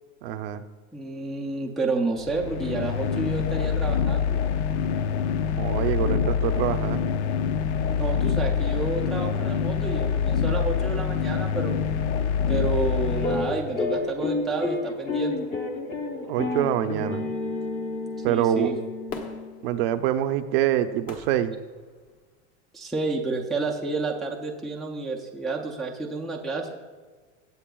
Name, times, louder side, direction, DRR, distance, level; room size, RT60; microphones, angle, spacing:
voice 1, 0.2-0.6 5.6-7.0 16.3-17.4 18.2-18.7 19.6-21.6, right 11 dB, 60° right, 9 dB, 0.6 m, -25 dB
voice 2, 0.9-4.4 7.8-11.8 12.5-15.3 18.3-18.8 22.7-26.8, right 3 dB, ahead, -3 dB, 0.4 m, -30 dB
sound 1, 2.2-14.0, left 7 dB, 70° left, 0.7 m, -25 dB
sound 2, 13.2-19.8, left 3 dB, 25° left, 0.9 m, -30 dB
Fireworks, 19.1-22.4 23.0-23.1, left 4 dB, 40° left, 1.3 m, -43 dB
17.5 x 8.0 x 2.3 m, 1.4 s
supercardioid pair, 160°, 34 cm